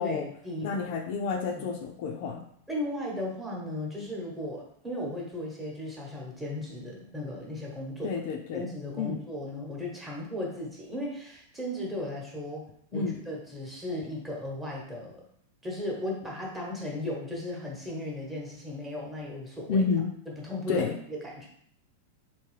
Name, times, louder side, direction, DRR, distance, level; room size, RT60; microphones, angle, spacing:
voice 1, 0.0-0.9 1.5-1.7 2.7-8.2 8.5-15.2 15.6-19.8 20.3-21.5, left 1 dB, 10° right, -3 dB, 1.0 m, -36 dB
voice 2, 0.6-2.4 8.0-8.6 9.0-9.2 12.9-13.2 19.7-20.1 20.7-20.9, left 5 dB, 50° left, 3 dB, 0.4 m, -29 dB
3.4 x 2.6 x 3.1 m, 0.66 s
figure-of-eight pair, 95°, 0 cm